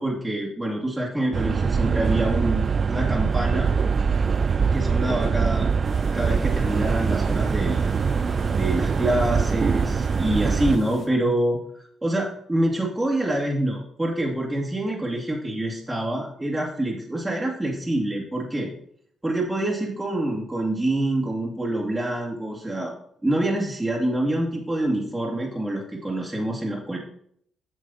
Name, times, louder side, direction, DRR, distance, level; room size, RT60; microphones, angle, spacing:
voice 1, 0.0-2.6 2.9-3.7 4.7-5.7 6.1-7.8 8.5-18.7 19.2-22.9 23.2-27.0, right 1 dB, 15° right, -3 dB, 2.3 m, -26 dB
sound 1, 1.3-10.8, right 5 dB, 45° right, 0.4 m, -23 dB
sound 2, 5.8-11.1, left 3 dB, 50° left, 2.5 m, -42 dB
8.6 x 6.3 x 4.2 m, 0.65 s
supercardioid pair, 55°, 0 cm